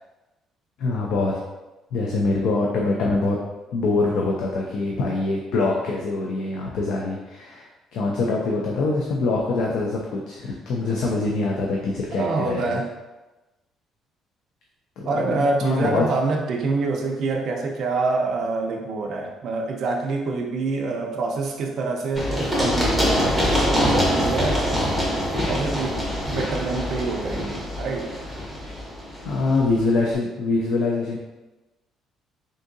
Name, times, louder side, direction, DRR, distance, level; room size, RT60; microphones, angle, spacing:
voice 1, 0.8-1.4 1.9-3.4 3.7-12.8 15.0-16.0 28.6-28.7 29.2-31.2, left 3 dB, 60° left, -1 dB, 0.4 m, -24 dB
voice 2, 12.1-12.9 15.1-23.4 23.7-24.9 25.5-28.1, right 3 dB, 50° right, 0 dB, 0.3 m, -26 dB
Run, 22.2-29.8, equal, 10° left, 0.7 m, -24 dB
3.6 x 2.6 x 2.6 m, 1.1 s
cardioid pair, 175°, 0 cm